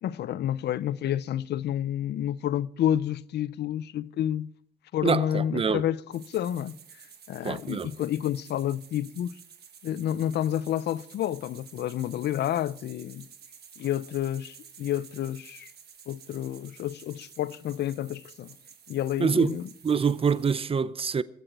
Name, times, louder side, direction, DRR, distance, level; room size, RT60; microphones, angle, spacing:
voice 1, 0.0-4.5 4.9-6.8 7.3-9.4 9.8-13.3 13.8-15.7 16.1-18.6 18.9-19.7, left 11 dB, 85° left, 0.5 m, -29 dB
voice 2, 5.0-5.9 7.4-7.9 19.2-19.6 19.8-21.2, right 6 dB, 35° right, 0.6 m, -25 dB
sound 1, 6.1-20.6, right 7 dB, 75° right, 1.5 m, -52 dB
22.0 x 7.9 x 4.6 m
cardioid pair, 80°, 17 cm